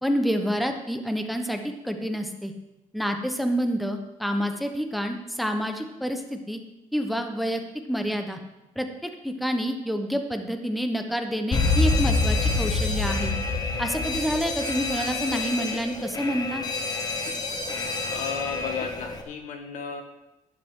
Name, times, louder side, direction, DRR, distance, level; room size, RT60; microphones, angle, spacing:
voice 1, 0.0-2.5 2.9-6.6 6.9-7.6 7.9-8.4 8.7-13.3 13.8-16.6, equal, ahead, 5 dB, 1.1 m, -28 dB
Alarm, 11.5-19.2, left 3 dB, 30° left, 1.3 m, -27 dB
voice 2, 18.1-20.0, left 5 dB, 75° left, 5 dB, 1.4 m, -33 dB
12.0 x 10.5 x 3.8 m, 0.95 s
cardioid pair, 125°, 13 cm